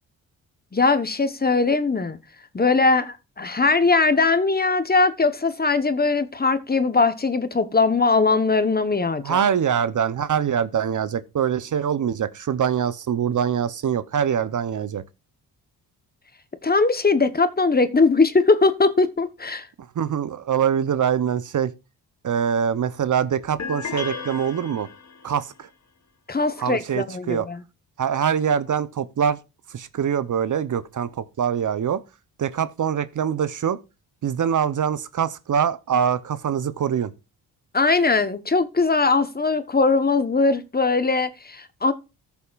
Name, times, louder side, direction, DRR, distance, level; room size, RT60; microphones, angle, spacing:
voice 1, 0.7-2.2 2.5-9.4 16.6-19.7 26.3-27.6 37.7-41.9, left 3 dB, 25° left, 1.1 m, -20 dB
voice 2, 9.2-15.0 20.0-21.7 22.2-24.9 25.2-25.7 26.6-27.5 28.0-29.4 29.7-32.0 32.4-33.8 34.2-37.1, right 8 dB, 50° right, 0.8 m, -24 dB
sound 1, 23.6-25.4, left 5 dB, 45° left, 1.6 m, -34 dB
14.0 x 7.0 x 2.4 m
cardioid pair, 65°, 40 cm